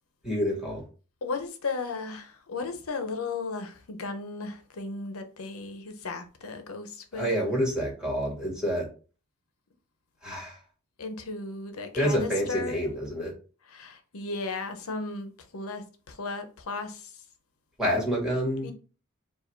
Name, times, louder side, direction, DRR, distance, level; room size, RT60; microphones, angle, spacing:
voice 1, 0.2-0.8 7.1-8.9 10.2-10.6 11.9-13.3 17.8-18.7, equal, 5° right, 1.8 m, -28 dB
voice 2, 1.2-7.3 11.0-12.8 13.7-17.1 18.6-18.7, left 3 dB, 85° left, 0.9 m, -35 dB
4.7 x 2.5 x 4.5 m
head